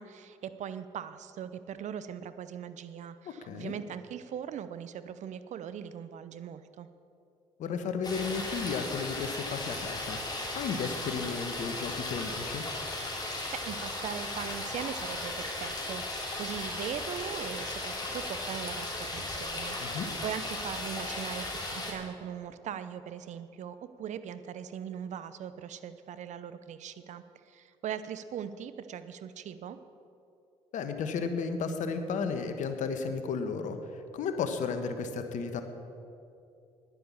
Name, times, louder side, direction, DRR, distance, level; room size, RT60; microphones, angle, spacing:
voice 1, 0.0-6.9 13.2-29.8, right 8 dB, 60° right, 12 dB, 0.7 m, -40 dB
voice 2, 3.4-3.7 7.6-10.2 10.5-12.6 19.8-20.1 30.7-35.6, left 5 dB, 65° left, 8 dB, 1.2 m, -33 dB
sound 1, 8.0-21.9, left 2 dB, 30° left, 3.4 m, -36 dB
10.0 x 9.8 x 7.3 m, 2.6 s
hypercardioid pair, 55°, 14 cm